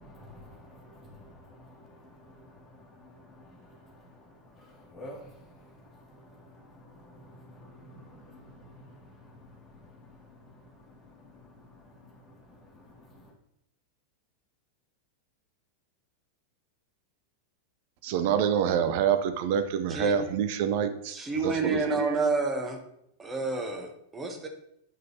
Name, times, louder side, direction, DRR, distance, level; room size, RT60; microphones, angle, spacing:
voice 1, 0.0-10.5 10.9-11.0 11.2-12.0 12.8-13.3, left 1 dB, 15° left, -3 dB, 2.0 m, -51 dB
voice 2, 18.0-21.2 21.4-22.2, right 8 dB, 50° right, 9 dB, 0.5 m, -26 dB
voice 3, 21.1-22.8 23.2-24.5, right 3 dB, 15° right, 3 dB, 1.0 m, -29 dB
7.6 x 5.2 x 2.7 m, 0.75 s
figure-of-eight pair, 90°, 0 cm